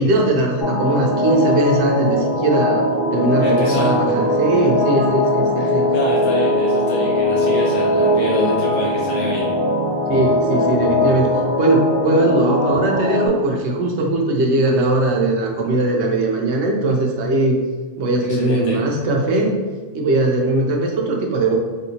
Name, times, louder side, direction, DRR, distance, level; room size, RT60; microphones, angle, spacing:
voice 1, 0.0-2.9 3.1-5.9 10.1-11.3 11.6-17.6 18.0-19.5 19.9-21.5, right 2 dB, 60° right, 0 dB, 0.8 m, -19 dB
sound 1, 0.6-13.3, left 1 dB, 50° left, 0.7 m, -20 dB
voice 2, 3.4-3.9 5.6-9.5 18.3-18.8, left 1 dB, 75° left, -5 dB, 1.4 m, -25 dB
3.4 x 2.7 x 2.8 m, 1.4 s
omnidirectional pair, 1.6 m